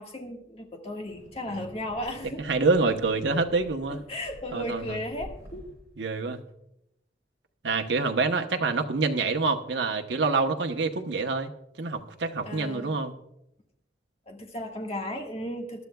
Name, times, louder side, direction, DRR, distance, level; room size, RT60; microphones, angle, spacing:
voice 1, 0.0-2.5 3.9-5.7 12.4-13.0 14.3-15.8, left 1 dB, 35° left, 2 dB, 1.6 m, -35 dB
Wind, 0.9-6.0, equal, 20° right, 4.1 m, -49 dB
voice 2, 2.4-4.0 4.5-5.0 6.0-6.4 7.6-11.5 11.8-13.1, right 3 dB, 80° right, 4 dB, 1.0 m, -26 dB
20.5 x 11.5 x 2.3 m, 0.82 s
head